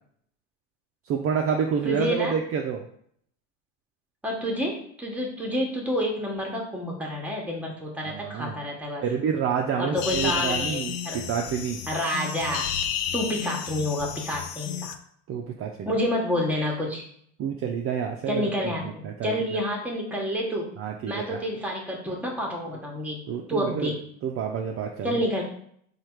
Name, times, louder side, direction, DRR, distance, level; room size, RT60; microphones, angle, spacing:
voice 1, 1.1-2.8 8.0-8.6 9.0-11.8 15.3-15.9 17.4-19.6 20.8-21.4 23.3-23.9 24.2-25.1, right 7 dB, 40° right, 2 dB, 0.4 m, -28 dB
voice 2, 1.8-2.3 4.2-9.0 9.8-11.3 11.9-12.7 13.1-14.9 15.9-17.0 18.3-20.7 21.1-23.2 23.5-24.0 25.0-25.4, equal, 5° right, -1 dB, 0.9 m, -29 dB
sound 1, 10.0-15.0, left 8 dB, 65° left, 0.5 m, -31 dB
3.2 x 2.4 x 4.3 m, 0.64 s
supercardioid pair, 110°, 36 cm